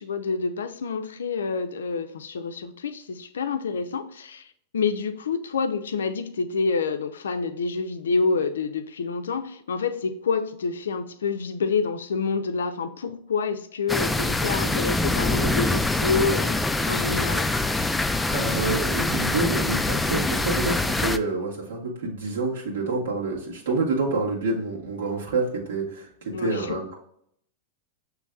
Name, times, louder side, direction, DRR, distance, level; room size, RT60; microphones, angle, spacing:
voice 1, 0.0-4.5 4.7-17.5 26.3-26.8, left 4 dB, 80° left, 0.5 m, -28 dB
sound 1, 13.9-21.2, left 2 dB, 10° left, 0.3 m, -24 dB
voice 2, 18.3-27.0, right 3 dB, 80° right, 1.6 m, -28 dB
6.2 x 3.1 x 2.3 m
hypercardioid pair, 100°, 0 cm